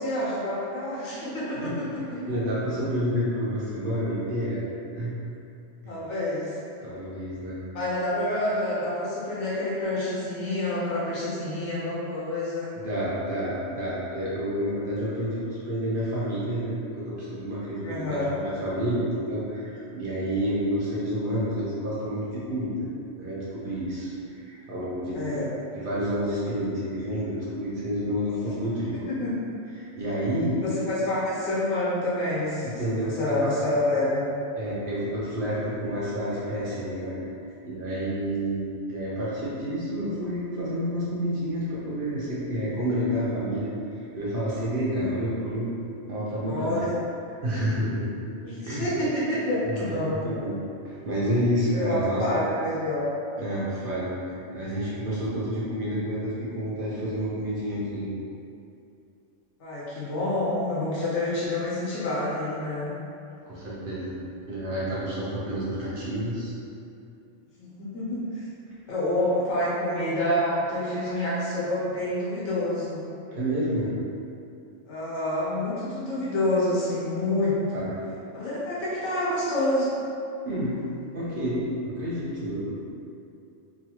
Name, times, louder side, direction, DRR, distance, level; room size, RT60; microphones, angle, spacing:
voice 1, 0.0-2.3 5.9-6.6 7.7-12.8 17.8-18.4 25.1-25.5 28.3-28.5 29.2-29.3 30.5-34.3 46.5-46.9 48.4-50.4 51.7-53.1 59.6-62.9 67.6-68.4 68.9-73.0 74.9-77.9 78.3-79.9, left 1 dB, 70° left, -8 dB, 1.1 m, -28 dB
voice 2, 2.3-4.6 4.9-5.1 5.8-6.0 6.8-7.6 12.8-22.8 23.2-25.4 25.8-29.2 29.8-30.6 32.6-33.5 34.6-37.2 37.6-43.7 44.1-45.7 46.1-46.7 47.4-48.1 48.6-48.9 49.7-50.6 50.8-52.3 53.4-58.1 63.5-64.2 64.5-66.5 73.3-73.9 77.7-77.9 80.4-80.7 81.1-81.7 81.9-82.9, equal, 55° right, -8 dB, 0.7 m, -29 dB
3.0 x 2.4 x 2.8 m, 2.7 s
omnidirectional pair, 1.2 m